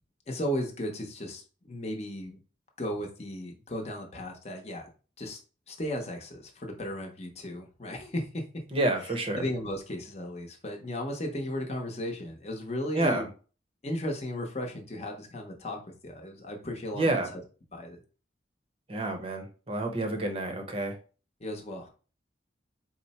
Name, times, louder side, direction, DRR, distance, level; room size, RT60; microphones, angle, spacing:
voice 1, 0.3-2.4 2.8-4.8 5.2-5.4 5.7-8.4 9.4-13.2 13.8-17.4 17.7-18.0 21.4-21.9, left 1 dB, 35° left, 2 dB, 0.8 m, -35 dB
voice 2, 8.7-9.4 12.9-13.3 16.9-17.3 18.9-21.0, right 2 dB, 30° right, 4 dB, 0.7 m, -29 dB
4.4 x 2.0 x 4.2 m, 0.37 s
head